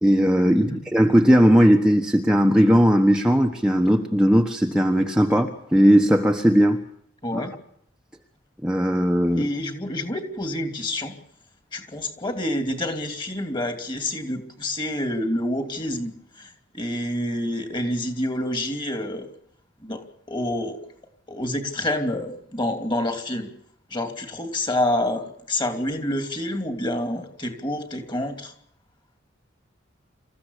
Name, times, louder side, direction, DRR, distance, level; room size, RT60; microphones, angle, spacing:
voice 1, 0.0-6.8 7.3-7.5 8.6-9.5, equal, 5° right, 1 dB, 1.2 m, -18 dB
voice 2, 7.2-7.5 9.3-11.2 11.7-19.3 19.8-20.8 21.3-23.5 23.9-28.5, left 1 dB, 25° left, 6 dB, 2.9 m, -28 dB
27.0 x 15.0 x 8.3 m, 0.68 s
head